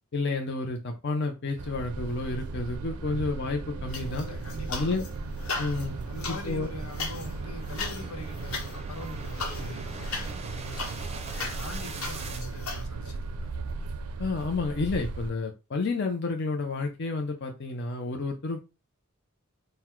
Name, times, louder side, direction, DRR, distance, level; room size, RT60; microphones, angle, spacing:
voice 1, 0.1-4.3 4.7-5.1 5.6-6.0 6.3-6.7 14.2-18.6, left 3 dB, 50° left, 0.6 m, -30 dB
sound 1, 1.0-12.5, right 3 dB, 30° right, 0.5 m, -44 dB
sound 2, 1.6-15.3, right 3 dB, 90° right, 0.5 m, -37 dB
sound 3, 3.9-5.1 5.4-12.8, left 4 dB, 70° left, 1.2 m, -38 dB
voice 2, 4.2-5.0 6.1-13.5, left 2 dB, 85° left, 1.1 m, -42 dB
3.9 x 2.1 x 4.4 m
head